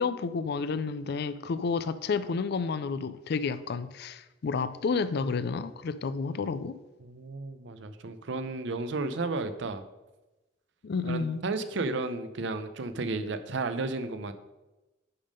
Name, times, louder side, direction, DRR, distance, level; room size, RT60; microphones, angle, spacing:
voice 1, 0.0-6.8 10.8-11.4, left 4 dB, 60° left, 0.4 m, -30 dB
voice 2, 7.0-9.8 11.0-14.3, right 3 dB, 70° right, 0.6 m, -33 dB
9.9 x 3.6 x 5.2 m
head